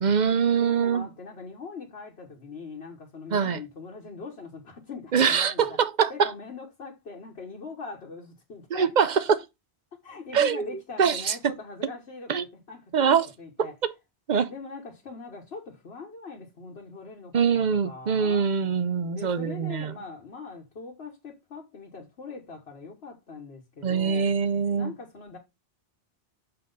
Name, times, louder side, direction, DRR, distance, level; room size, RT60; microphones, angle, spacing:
voice 1, 0.0-1.1 3.3-3.6 5.1-6.3 8.7-9.4 10.3-10.7 11.0-11.4 12.3-12.4 12.9-13.3 13.6-13.9 14.3-14.5 17.3-19.9 23.8-24.9, right 6 dB, 50° right, 0.7 m, -23 dB
voice 2, 0.6-5.7 6.1-8.9 9.9-13.7 14.5-18.5 19.1-24.4 24.7-25.4, left 4 dB, 70° left, 1.5 m, -42 dB
6.7 x 3.9 x 5.3 m
omnidirectional pair, 1.1 m